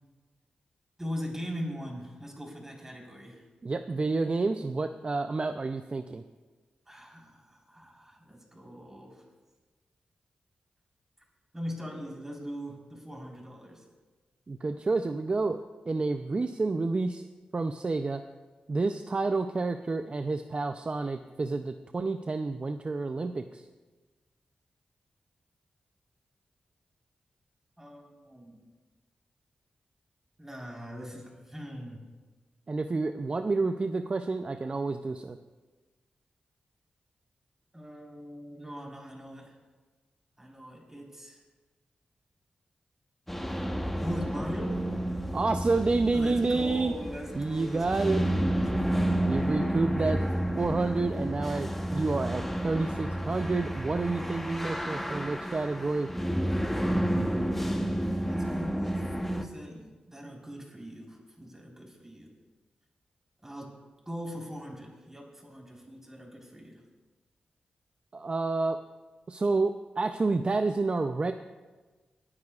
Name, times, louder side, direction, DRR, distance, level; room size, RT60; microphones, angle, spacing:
voice 1, 1.0-3.4 6.9-9.2 11.5-13.9 15.2-15.3 27.8-28.6 30.4-32.0 37.7-39.6 40.4-41.4 44.0-44.8 46.1-48.3 48.8-49.7 58.2-62.3 63.4-63.7 64.1-66.8, equal, 15° right, -2 dB, 4.1 m, -41 dB
voice 2, 3.6-6.2 14.5-17.2 17.5-18.2 18.7-23.6 32.7-35.4 45.3-46.9 47.4-48.2 49.3-50.2 50.6-56.1 68.1-68.8 69.3-71.3, right 3 dB, 40° right, 7 dB, 0.5 m, -29 dB
sound 1, 43.3-59.4, right 1 dB, 5° left, 1.0 m, -31 dB
28.0 x 9.8 x 2.4 m, 1.3 s
cardioid pair, 70°, 3 cm